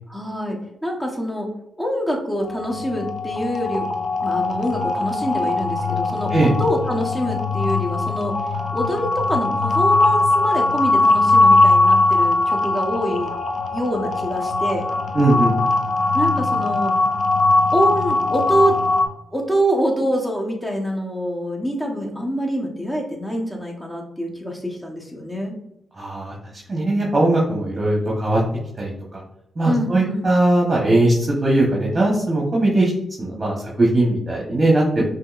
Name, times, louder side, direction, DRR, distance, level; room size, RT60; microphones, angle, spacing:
voice 1, 0.1-1.5 1.8-3.9 4.2-8.3 8.7-13.3 13.7-14.8 16.1-16.9 17.7-18.8 19.3-25.6 29.6-30.3 35.0-35.1, equal, 5° left, 0 dB, 1.1 m, -25 dB
sound 1, 2.4-19.1, left 2 dB, 60° left, 0.6 m, -20 dB
voice 2, 15.1-15.5 26.0-26.3 26.7-28.4 28.8-29.2 29.6-32.9 33.2-35.0, right 2 dB, 35° right, -3 dB, 1.1 m, -19 dB
5.6 x 2.9 x 2.5 m, 0.78 s
supercardioid pair, 55°, 0 cm